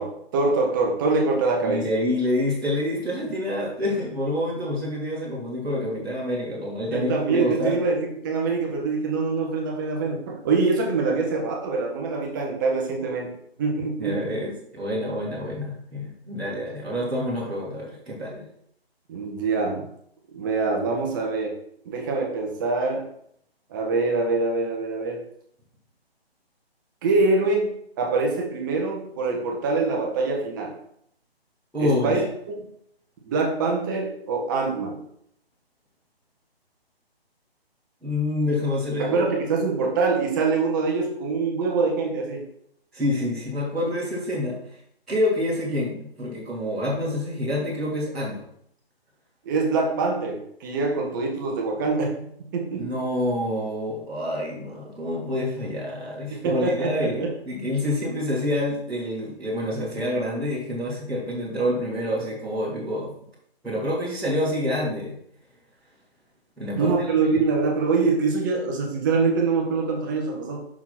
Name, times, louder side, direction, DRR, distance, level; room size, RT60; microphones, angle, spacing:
voice 1, 0.0-1.8 6.9-13.3 13.6-14.3 19.1-19.9 20.3-21.6 21.8-23.1 23.7-25.2 27.0-30.7 31.8-32.2 33.2-35.0 39.0-42.4 49.4-52.2 52.5-52.9 56.3-57.3 66.7-70.6, right 3 dB, 20° right, 1 dB, 1.0 m, -24 dB
voice 2, 1.6-7.8 14.0-18.4 31.7-32.2 38.0-39.3 42.9-44.8 45.1-48.4 52.8-63.1 63.6-65.1 66.6-66.9 67.3-67.4, left 1 dB, ahead, -19 dB, 0.5 m, -27 dB
6.0 x 4.4 x 5.8 m, 0.69 s
figure-of-eight pair, 150°, 31 cm